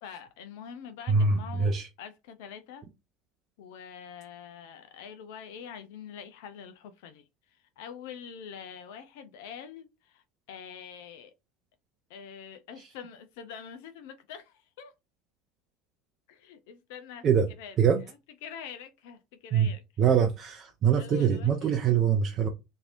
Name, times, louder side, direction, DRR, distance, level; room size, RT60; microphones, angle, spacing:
voice 1, 0.0-2.8 3.6-11.3 12.1-14.9 16.3-17.3 17.6-17.8 18.4-19.8 21.0-21.8, left 7 dB, 65° left, 0.4 m, -45 dB
voice 2, 1.1-1.9 17.2-17.5 17.8-18.0 19.5-19.7 20.0-22.5, right 7 dB, 40° right, 0.5 m, -24 dB
3.1 x 2.6 x 2.4 m
hypercardioid pair, 75°, 0 cm